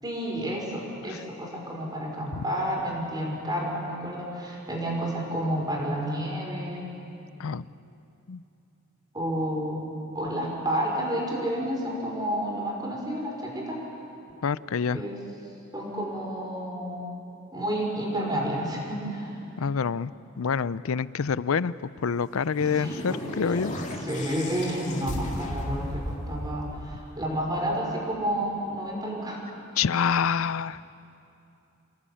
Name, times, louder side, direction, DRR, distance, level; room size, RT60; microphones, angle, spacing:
voice 1, 0.0-6.9 9.1-9.9 10.1-13.8 14.9-15.2 15.7-17.0 17.5-19.4 22.6-23.7 24.0-29.4, equal, 20° right, -1 dB, 5.2 m, -30 dB
voice 2, 14.4-15.0 19.6-20.1 20.4-23.7 29.8-30.8, left 6 dB, 85° left, 18 dB, 0.5 m, -27 dB
sound 1, 22.2-27.6, left 1 dB, 35° left, 2.2 m, -35 dB
28.0 x 17.0 x 8.7 m, 2.7 s
head